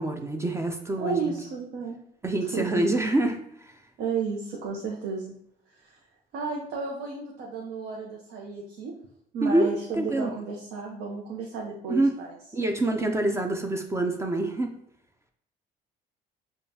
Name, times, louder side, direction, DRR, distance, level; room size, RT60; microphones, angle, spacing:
voice 1, 0.0-1.3 2.2-3.4 9.4-10.3 11.9-12.1 12.5-14.8, right 2 dB, 15° right, 4 dB, 0.4 m, -26 dB
voice 2, 1.0-2.0 2.5-2.8 4.0-5.3 5.7-6.0 6.3-8.9 9.3-12.3, right 5 dB, 80° right, -2 dB, 0.7 m, -33 dB
5.1 x 2.3 x 2.7 m, 0.74 s
cardioid pair, 110°, 17 cm